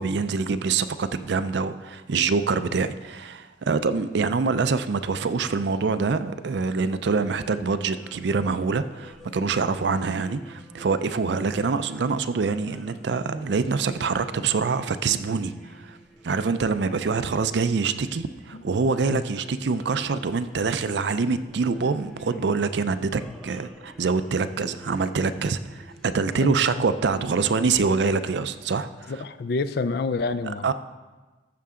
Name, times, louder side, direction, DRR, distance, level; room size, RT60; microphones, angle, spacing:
voice 1, 0.0-16.0 16.2-29.1 30.6-30.7, right 4 dB, 60° right, 12 dB, 0.4 m, -25 dB
sound 1, 7.0-26.1, equal, ahead, 0.6 m, -49 dB
voice 2, 26.3-26.8 27.2-27.3 29.1-30.7, left 3 dB, 55° left, 13 dB, 0.4 m, -29 dB
14.5 x 6.6 x 3.7 m, 1.2 s
head